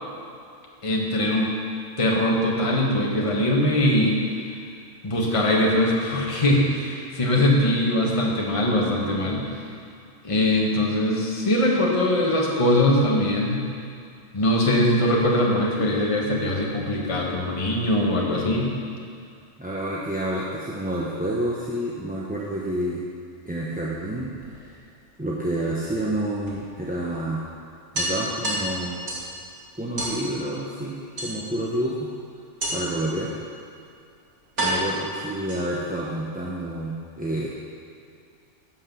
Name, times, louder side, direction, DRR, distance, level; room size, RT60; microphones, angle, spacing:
voice 1, 0.8-1.6 2.0-4.2 5.0-9.5 10.2-13.7 14.3-18.7, left 1 dB, 25° left, -2 dB, 1.5 m, -22 dB
voice 2, 19.6-23.0 23.4-24.8 25.2-27.4 27.9-29.0 29.8-32.1 32.7-33.3 34.6-37.5, right 1 dB, 10° right, -6 dB, 0.8 m, -29 dB
sound 1, 23.9-25.0 26.5-26.6 26.9-27.0 27.3-27.4 27.9-29.3 30.0-30.2 31.2-31.7 32.6-33.0 33.9-34.0 34.6-35.9, right 1 dB, 60° right, 3.0 m, -29 dB
11.5 x 5.8 x 7.2 m, 2.4 s
omnidirectional pair, 1.4 m